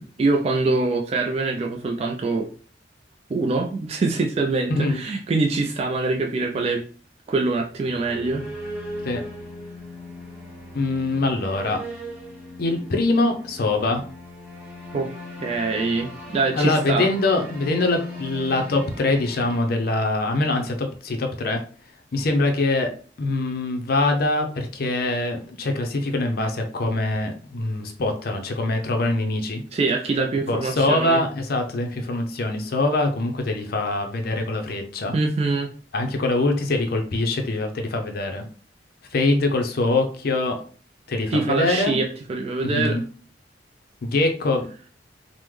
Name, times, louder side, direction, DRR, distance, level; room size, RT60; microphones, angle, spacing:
voice 1, 0.0-2.5 3.3-6.8 7.3-8.4 14.9-15.1 15.4-17.1 29.7-31.2 35.1-35.7 41.3-42.0 42.3-42.9, right 3 dB, 35° right, 1 dB, 0.3 m, -24 dB
voice 2, 4.7-5.0 9.0-9.2 10.7-11.8 12.6-14.0 16.5-21.6 22.1-22.9 23.2-29.6 30.5-35.1 35.9-38.5 39.1-40.6 41.1-42.0 42.6-43.0 44.0-44.7, left 2 dB, 60° left, 4 dB, 0.5 m, -23 dB
sound 1, 7.7-20.5, left 1 dB, 5° right, 1.5 m, -39 dB
3.5 x 2.1 x 3.1 m, 0.42 s
head